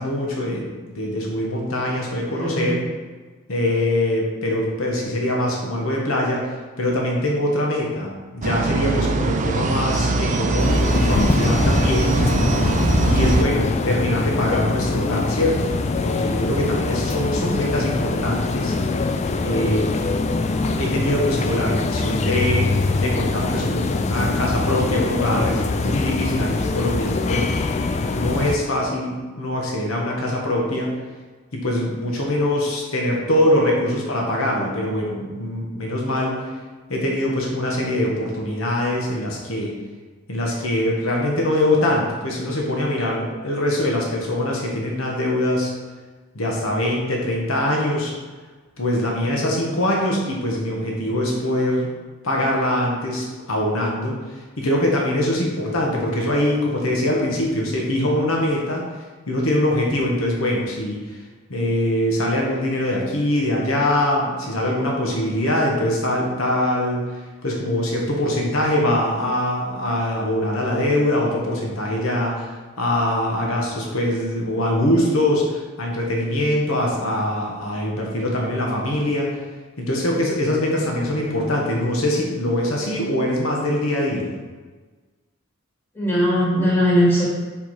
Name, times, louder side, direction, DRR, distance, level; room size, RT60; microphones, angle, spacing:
voice 1, 0.0-2.8 3.5-12.2 13.1-15.7 16.0-18.7 19.0-19.1 19.4-20.0 20.8-27.6 28.1-30.9 31.5-36.4 36.9-39.8 40.3-45.7 46.3-48.1 48.8-51.9 52.2-54.2 54.6-58.9 59.3-61.2 61.5-67.0 67.4-79.3 79.8-84.3, left 1 dB, 70° left, -1 dB, 1.2 m, -23 dB
voice 2, 2.3-2.8 17.1-17.6 85.9-87.3, equal, 10° left, -7 dB, 1.7 m, -20 dB
sound 1, 8.4-13.4, right 2 dB, 35° right, 0.4 m, -21 dB
sound 2, 10.6-28.6, left 3 dB, 30° left, 0.4 m, -23 dB
5.9 x 4.4 x 4.7 m, 1.3 s
head